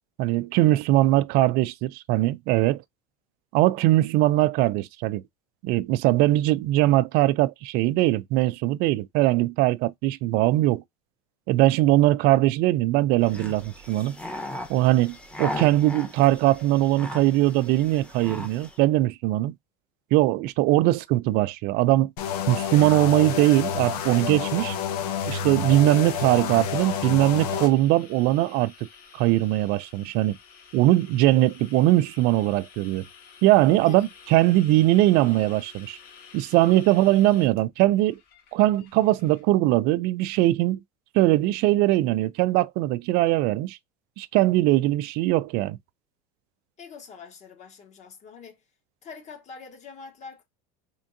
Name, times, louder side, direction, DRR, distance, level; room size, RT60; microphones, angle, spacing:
voice 1, 0.2-2.8 3.5-5.2 5.6-10.8 11.5-14.2 14.7-19.5 20.1-22.1 22.5-24.8 25.3-28.7 29.1-30.4 30.7-33.0 33.4-36.0 36.3-38.2 38.5-40.8 41.1-43.8 44.2-45.8, right 16 dB, 55° right, 0.4 m, -21 dB
sound 1, 13.2-18.8, left 1 dB, 5° left, 0.9 m, -37 dB
sound 2, 22.2-27.7, left 7 dB, 80° left, 1.0 m, -29 dB
sound 3, 26.2-39.4, left 6 dB, 50° left, 1.7 m, -50 dB
voice 2, 46.8-48.6 49.0-50.4, left 5 dB, 35° left, 1.2 m, -44 dB
3.6 x 3.5 x 2.6 m
supercardioid pair, 110°, 20 cm